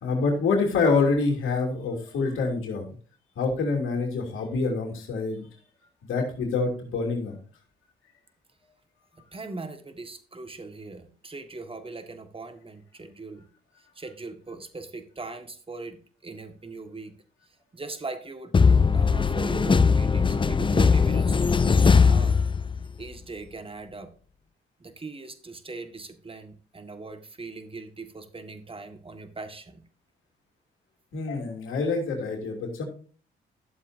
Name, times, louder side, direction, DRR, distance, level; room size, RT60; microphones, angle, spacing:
voice 1, 0.0-2.8 3.4-5.5 6.1-7.4 31.1-32.9, left 4 dB, 70° left, 1 dB, 3.0 m, -26 dB
voice 2, 9.1-13.5 13.9-17.1 17.5-18.6 18.9-22.4 23.0-24.1 24.8-29.8, right 3 dB, 25° right, 9 dB, 1.7 m, -40 dB
sound 1, 18.5-23.0, left 5 dB, 25° left, 0.6 m, -20 dB
12.5 x 7.4 x 2.7 m, 0.41 s
supercardioid pair, 60°, 21 cm